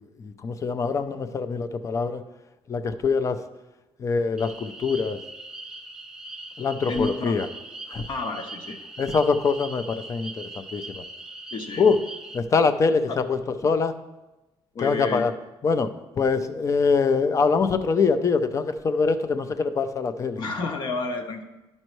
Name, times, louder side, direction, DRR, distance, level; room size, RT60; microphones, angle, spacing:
voice 1, 0.0-2.2 2.7-3.4 4.0-5.2 6.6-7.5 7.9-8.1 9.0-11.0 11.8-12.0 12.3-13.9 14.8-15.3 15.6-20.4, left 5 dB, 35° left, 10 dB, 0.5 m, -24 dB
sound 1, 4.4-12.4, right 2 dB, 5° right, 0.6 m, -40 dB
voice 2, 6.9-7.4 8.1-8.8 11.5-11.8 13.1-13.2 14.7-15.3 20.4-21.4, left 3 dB, 55° left, 3 dB, 0.9 m, -30 dB
11.0 x 5.4 x 3.1 m, 1.0 s
cardioid pair, 115°, 9 cm